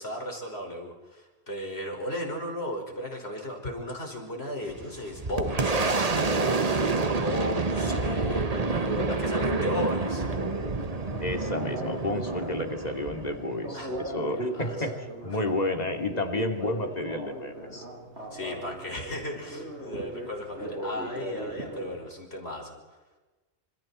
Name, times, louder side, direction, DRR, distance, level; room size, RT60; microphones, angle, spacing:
voice 1, 0.0-6.2 6.4-10.3 13.7-13.9 14.3-14.9 15.3-15.4 18.3-22.8, left 1 dB, 65° left, 1 dB, 6.0 m, -35 dB
Boom, 4.7-14.1, right 3 dB, 35° right, 1.3 m, -28 dB
Telephone, 4.8-22.0, right 1 dB, 85° right, 8.6 m, -39 dB
voice 2, 11.2-15.0 15.2-17.8, left 2 dB, 35° left, 4 dB, 2.8 m, -31 dB
30.0 x 27.5 x 4.4 m, 1.2 s
omnidirectional pair, 1.1 m